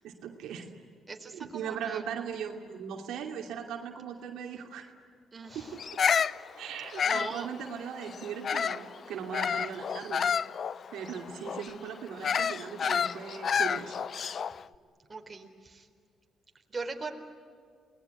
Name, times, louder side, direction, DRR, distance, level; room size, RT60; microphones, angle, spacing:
voice 1, 0.0-0.7 1.3-4.9 5.5-6.0 6.6-10.2 10.9-14.0, right 7 dB, 85° right, 2 dB, 2.8 m, -39 dB
voice 2, 1.1-2.0 5.3-5.8 7.0-7.5 15.1-15.9 16.7-17.1, right 4 dB, 25° right, 3 dB, 4.0 m, -40 dB
Bird vocalization bird call bird song, 5.8-8.9 9.3-14.6, left 7 dB, 50° left, 0.6 m, -30 dB
29.0 x 20.5 x 9.7 m, 2.2 s
cardioid pair, 90°, 0 cm